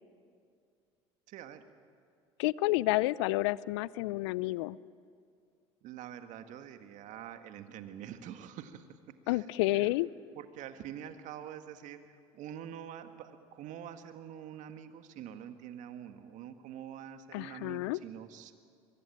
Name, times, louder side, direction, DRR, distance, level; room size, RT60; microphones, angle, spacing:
voice 1, 1.3-1.6 5.8-9.0 9.3-9.5 9.7-10.0 10.4-18.5, right 9 dB, 60° right, 8 dB, 1.7 m, -46 dB
voice 2, 2.4-4.8 9.3-10.1 17.3-18.0, left 19 dB, 75° left, 21 dB, 0.5 m, -30 dB
23.5 x 23.0 x 8.7 m, 2.3 s
hypercardioid pair, 65°, 15 cm